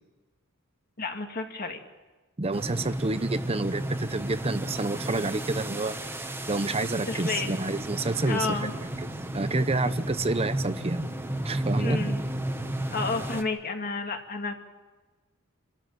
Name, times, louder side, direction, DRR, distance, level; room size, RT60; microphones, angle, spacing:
voice 1, 1.0-1.8 7.1-7.5 8.3-8.7 11.8-12.2 12.9-14.7, left 3 dB, 45° left, 4 dB, 2.2 m, -31 dB
voice 2, 2.4-6.0 6.5-8.7 9.3-11.1 11.4-12.1, right 2 dB, 30° right, 12 dB, 0.8 m, -29 dB
sound 1, 2.5-13.4, right 1 dB, 10° right, 1.2 m, -33 dB
26.5 x 13.0 x 9.2 m, 1.2 s
head